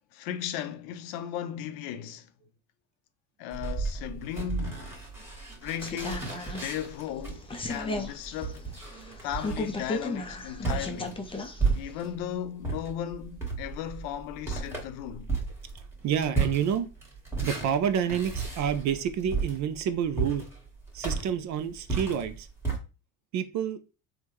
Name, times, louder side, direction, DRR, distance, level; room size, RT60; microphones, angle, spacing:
voice 1, 0.1-2.3 3.4-4.9 5.6-8.6 9.2-11.4 11.7-15.3, left 10 dB, 70° left, 0.6 m, -36 dB
sound 1, 3.5-12.2 12.6-22.8, right 4 dB, 5° right, 1.4 m, -34 dB
sound 2, 5.8-11.6 11.9-12.0, left 2 dB, 15° left, 0.5 m, -35 dB
voice 2, 16.0-16.9 17.4-20.4 20.9-22.5 23.3-23.8, right 8 dB, 45° right, 0.4 m, -28 dB
3.4 x 2.1 x 3.0 m
supercardioid pair, 85°, 44 cm